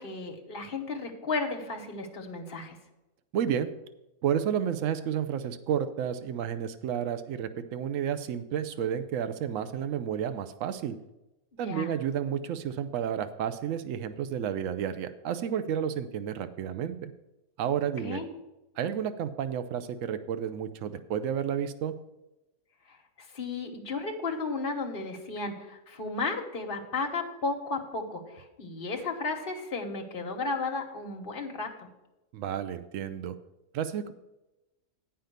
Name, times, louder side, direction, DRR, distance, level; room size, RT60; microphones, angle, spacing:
voice 1, 0.0-2.8 11.6-11.9 18.0-18.3 22.9-31.9, left 3 dB, 45° left, 3 dB, 1.2 m, -34 dB
voice 2, 3.3-3.7 4.2-11.0 11.6-17.1 17.6-18.2 18.8-21.9 32.3-33.3 33.7-34.1, right 9 dB, 70° right, 11 dB, 1.0 m, -31 dB
8.7 x 5.7 x 6.7 m, 0.99 s
omnidirectional pair, 1.5 m